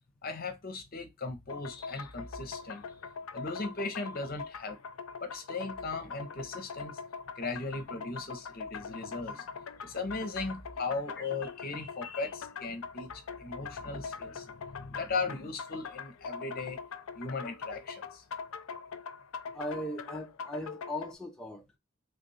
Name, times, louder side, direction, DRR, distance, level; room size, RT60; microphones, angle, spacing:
voice 1, 0.2-2.8 3.3-4.8 5.2-7.0 7.4-9.6 9.8-16.8 17.1-18.2, left 3 dB, 45° left, 0.8 m, -37 dB
sound 1, 1.5-21.1, left 5 dB, 85° left, 0.5 m, -42 dB
voice 2, 19.5-21.8, left 1 dB, 5° left, 0.5 m, -38 dB
3.5 x 2.5 x 4.1 m
head